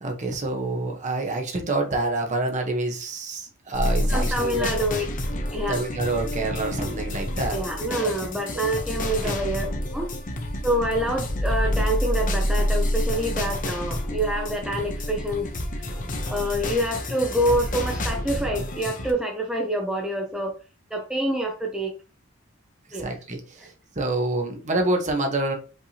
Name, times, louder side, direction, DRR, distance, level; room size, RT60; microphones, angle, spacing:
voice 1, 0.0-4.7 5.7-7.6 8.0-8.1 8.5-8.6 9.2-9.3 22.9-25.6, right 2 dB, 35° right, 3 dB, 1.0 m, -27 dB
sound 1, 3.7-19.1, left 1 dB, 40° left, 0.8 m, -28 dB
voice 2, 4.1-5.0 5.5-5.8 7.5-9.7 9.9-10.1 10.6-15.5 15.8-15.9 16.3-20.6 20.9-22.0 22.9-23.1 23.6-23.7, right 1 dB, 5° right, 1 dB, 0.6 m, -26 dB
5.3 x 3.3 x 2.8 m, 0.34 s
head